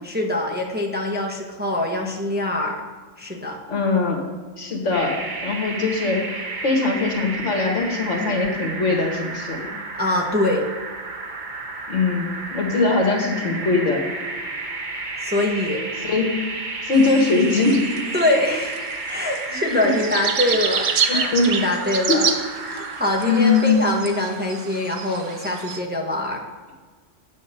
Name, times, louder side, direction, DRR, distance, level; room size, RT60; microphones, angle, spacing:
voice 1, 0.0-2.9 3.2-3.6 9.9-10.7 15.2-15.8 18.1-18.8 19.1-22.3 22.6-26.5, left 1 dB, 10° right, 0 dB, 1.0 m, -24 dB
voice 2, 3.7-4.2 4.6-5.2 5.4-9.7 11.9-14.0 16.0-16.3 16.8-17.9 21.2-21.6 22.1-22.2 23.3-23.7, left 3 dB, 70° left, 1 dB, 1.9 m, -21 dB
sound 1, 4.9-23.7, right 3 dB, 40° right, 1.0 m, -32 dB
sound 2, 16.9-25.8, right 6 dB, 75° right, 1.2 m, -29 dB
8.5 x 6.6 x 6.5 m, 1.4 s
omnidirectional pair, 1.3 m